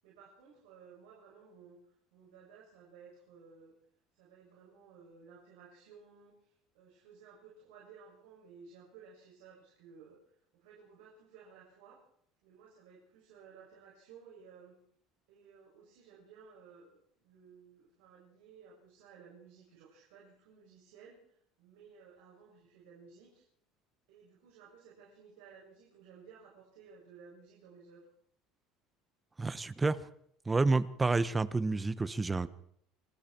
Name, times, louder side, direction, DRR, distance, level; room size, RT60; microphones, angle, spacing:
voice 1, 0.0-1.8 2.1-3.7 4.1-12.0 12.4-14.8 15.3-23.4 24.1-28.1, right 6 dB, 80° right, 7.4 m, -57 dB
voice 2, 29.4-30.0 30.5-32.5, right 3 dB, 15° right, 1.2 m, -29 dB
28.0 x 21.0 x 4.6 m
supercardioid pair, 105°, 0 cm